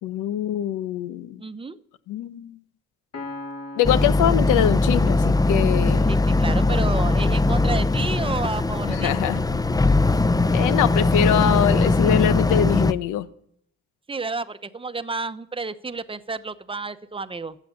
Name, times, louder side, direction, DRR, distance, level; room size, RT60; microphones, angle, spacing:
voice 1, 0.0-1.4 2.1-2.6 3.8-6.1 8.8-9.4 10.5-13.3, left 10 dB, 90° left, 14 dB, 0.9 m, -23 dB
voice 2, 1.4-1.8 6.1-9.1 14.1-17.6, right 3 dB, 20° right, 13 dB, 0.9 m, -31 dB
Piano, 3.1-6.7, left 2 dB, 55° left, 2.9 m, -40 dB
Boat Water vehicle, 3.8-12.9, left 2 dB, 10° left, 0.5 m, -20 dB
15.0 x 8.3 x 9.5 m, 0.69 s
cardioid pair, 90°, 30 cm